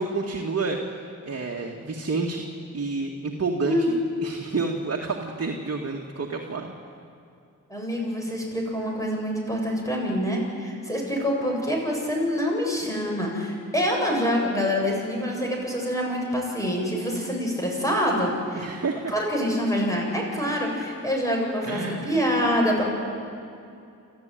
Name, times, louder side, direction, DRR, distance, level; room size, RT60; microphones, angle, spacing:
voice 1, 0.0-2.5 2.7-6.7 18.6-19.1 21.6-22.1, right 3 dB, 45° right, 0 dB, 2.2 m, -29 dB
voice 2, 7.7-18.6 19.1-22.8, equal, 10° left, -1 dB, 7.8 m, -26 dB
28.5 x 14.5 x 9.4 m, 2.6 s
cardioid pair, 65°, 34 cm